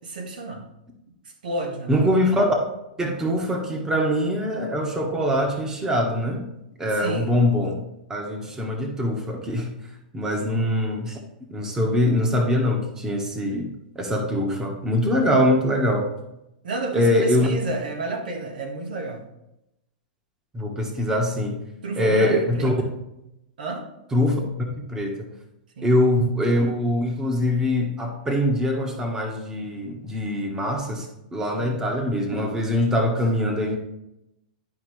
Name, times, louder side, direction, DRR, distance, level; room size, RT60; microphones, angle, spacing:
voice 1, 0.0-0.6 1.4-1.9 6.9-7.3 10.4-10.6 16.6-19.2 21.8-22.9 23.6-23.9 25.8-25.9 31.6-31.8, right 2 dB, 80° right, 3 dB, 1.7 m, -31 dB
voice 2, 1.9-2.6 3.0-6.5 6.8-7.8 8.1-9.7 10.1-11.2 11.5-13.7 13.9-16.1 16.9-17.5 20.5-21.6 22.0-22.7 24.1-25.3 25.8-33.8, left 1 dB, 10° right, 2 dB, 1.3 m, -23 dB
11.0 x 5.0 x 3.2 m, 0.87 s
hypercardioid pair, 135°, 5 cm